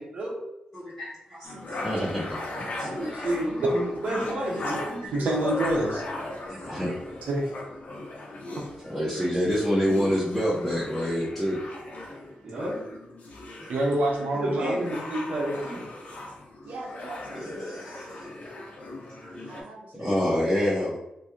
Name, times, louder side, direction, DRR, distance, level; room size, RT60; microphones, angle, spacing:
voice 1, 0.7-3.3 5.0-5.1 6.5-7.0 8.8-12.0 13.6-13.7 17.3-18.0 18.8-19.6 20.0-21.0, equal, ahead, -10 dB, 1.1 m, -28 dB
sound 1, 1.4-19.6, left 2 dB, 65° left, 0.8 m, -38 dB
voice 2, 1.5-2.2 2.7-3.1 5.1-6.3 7.3-7.5 13.7-14.9 16.6-18.2 19.5-20.2, right 1 dB, 90° right, 0 dB, 0.6 m, -30 dB
voice 3, 2.9-5.5 12.4-12.7 14.3-15.8, right 1 dB, 60° right, -8 dB, 1.2 m, -30 dB
3.0 x 2.5 x 3.6 m, 0.86 s
cardioid pair, 65°, 3 cm